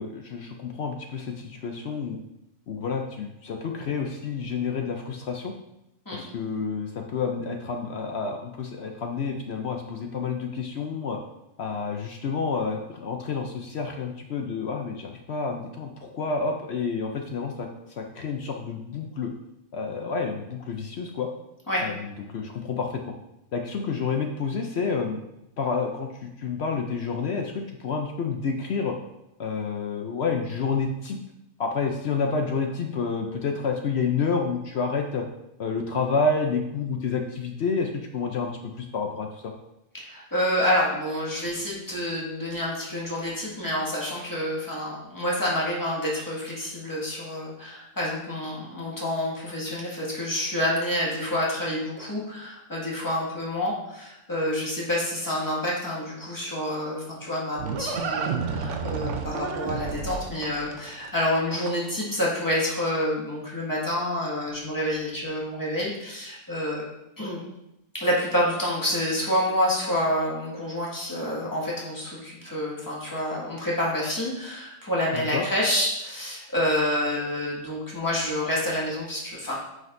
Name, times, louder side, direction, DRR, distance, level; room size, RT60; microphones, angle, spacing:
voice 1, 0.0-2.2 2.7-5.5 6.1-11.2 11.6-19.3 19.7-21.3 21.8-23.1 23.5-25.2 25.6-29.0 29.4-31.2 31.6-35.2 35.6-39.5 75.1-75.5, left 4 dB, 60° left, 3 dB, 0.7 m, -29 dB
voice 2, 39.9-66.8 67.2-67.4 67.9-79.5, left 1 dB, 15° left, -6 dB, 1.7 m, -28 dB
Livestock farm animals working animals, 57.0-62.0, right 5 dB, 60° right, 0.9 m, -31 dB
9.2 x 5.1 x 2.6 m, 0.88 s
omnidirectional pair, 1.6 m